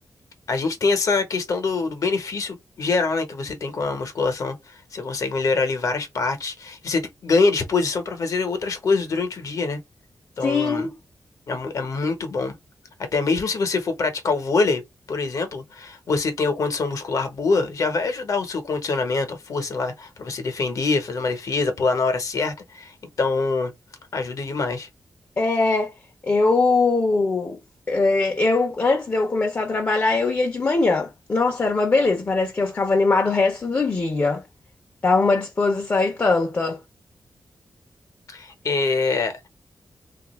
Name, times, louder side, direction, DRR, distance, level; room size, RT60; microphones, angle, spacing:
voice 1, 0.5-9.8 10.4-10.9 11.5-12.6 13.1-14.8 15.1-23.7 24.1-24.9 38.3-39.4, left 4 dB, 60° left, 0.9 m, -24 dB
voice 2, 10.4-10.9 25.4-25.9 26.2-27.6 27.9-34.4 35.0-36.8, left 3 dB, 35° left, 0.6 m, -21 dB
3.1 x 2.4 x 3.0 m
wide cardioid pair, 145°, 6 cm